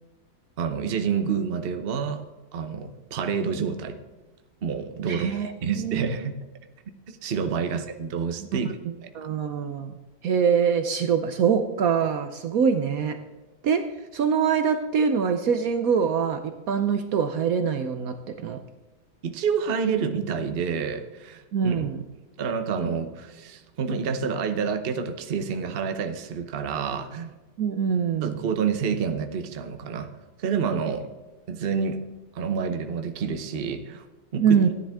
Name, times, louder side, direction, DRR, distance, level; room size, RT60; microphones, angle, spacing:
voice 1, 0.6-2.2 2.5-4.0 4.6-5.3 5.6-6.3 6.9-8.8 9.0-9.1 19.2-21.9 22.4-27.3 28.2-30.1 30.4-31.1 31.5-32.0 32.3-34.0 34.3-34.6, right 6 dB, 45° right, 7 dB, 0.9 m, -28 dB
voice 2, 5.1-6.1 9.1-9.9 10.2-13.2 13.6-13.9 14.1-18.6 21.5-22.0 27.6-28.4 34.4-34.7, right 7 dB, 65° right, 8 dB, 1.1 m, -24 dB
15.0 x 10.0 x 3.5 m, 1.2 s
omnidirectional pair, 1.8 m